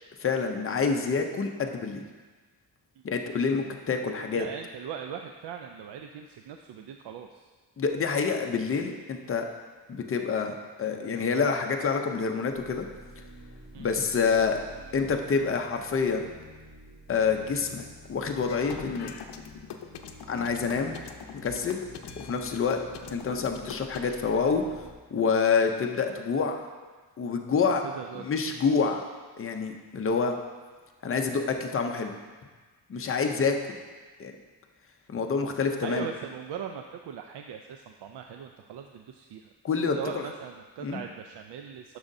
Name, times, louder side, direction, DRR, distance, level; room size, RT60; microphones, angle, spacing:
voice 1, 0.2-2.0 3.0-4.5 7.8-9.5 9.9-12.9 13.8-14.6 14.9-16.3 17.1-19.1 20.3-21.0 21.4-21.8 22.2-22.8 23.1-24.6 25.1-26.6 27.2-27.8 28.2-29.0 29.4-30.4 31.0-32.1 32.9-33.8 34.2-34.3 35.1-36.1 39.6-40.2 40.8-41.0, left 5 dB, 35° left, 4 dB, 0.6 m, -27 dB
voice 2, 4.3-7.5 13.7-13.9 27.8-28.3 28.7-28.9 33.0-33.4 35.8-39.5 39.9-42.0, right 7 dB, 80° right, 4 dB, 0.5 m, -40 dB
sound 1, 12.5-24.9, right 1 dB, 55° right, 2.2 m, -49 dB
sound 2, 18.5-24.1, left 8 dB, 80° left, 0.6 m, -42 dB
11.0 x 6.3 x 2.6 m, 1.4 s
wide cardioid pair, 175°, 41 cm